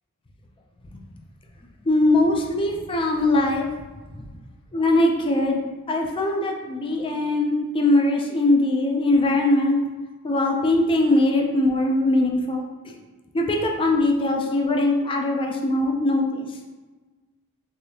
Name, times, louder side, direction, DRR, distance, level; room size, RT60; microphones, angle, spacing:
voice 1, 1.9-3.7 4.2-4.3 4.7-5.6 5.9-9.8 10.2-13.0 13.3-16.5, left 2 dB, 25° left, 1 dB, 0.4 m, -21 dB
3.4 x 3.4 x 2.7 m, 1.3 s
head